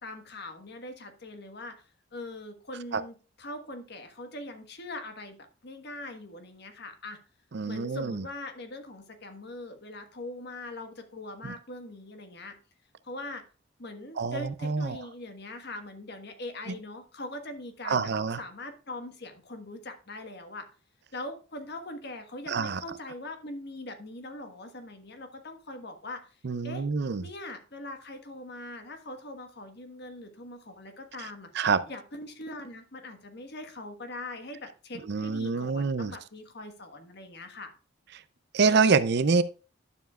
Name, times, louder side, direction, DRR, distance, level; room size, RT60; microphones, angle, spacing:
voice 1, 0.0-5.4 5.6-7.2 7.7-12.5 13.0-13.4 13.8-18.1 18.4-20.7 21.1-26.4 26.6-26.8 27.2-37.7, left 2 dB, 55° left, 1.4 m, -42 dB
voice 2, 7.5-8.2 11.4-11.5 14.2-15.0 17.8-18.4 22.5-22.8 26.4-27.2 31.5-31.8 35.1-36.1 38.5-39.4, right 5 dB, 55° right, 0.5 m, -26 dB
11.5 x 7.2 x 2.4 m
head